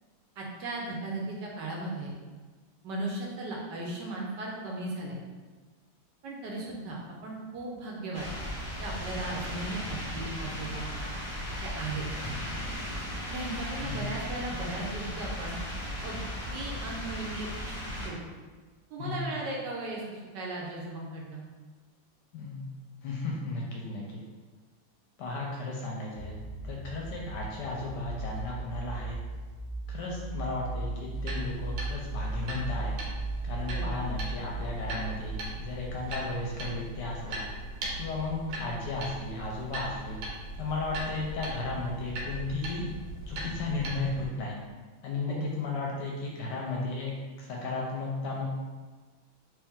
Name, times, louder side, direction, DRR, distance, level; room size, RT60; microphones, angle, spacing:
voice 1, 0.4-2.1 2.8-5.2 6.2-8.3 8.8-10.9 11.6-12.1 13.3-15.6 16.0-16.2 16.5-18.2 18.9-21.5 33.7-34.0 45.3-45.5, right 2 dB, 70° right, -2 dB, 1.2 m, -37 dB
sound 1, 8.1-18.1, equal, 20° left, 0.4 m, -36 dB
voice 2, 22.3-22.7 23.0-24.0 25.2-29.2 29.9-32.9 33.4-37.5 37.9-40.2 40.6-42.9 43.3-44.6 45.0-47.1 47.4-48.4, left 3 dB, 75° left, -2 dB, 1.1 m, -34 dB
sound 2, 26.1-35.3, right 2 dB, 15° right, 1.2 m, -37 dB
sound 3, 31.1-44.3, right 1 dB, 90° right, 1.5 m, -39 dB
3.2 x 3.1 x 3.5 m, 1.4 s
omnidirectional pair, 2.1 m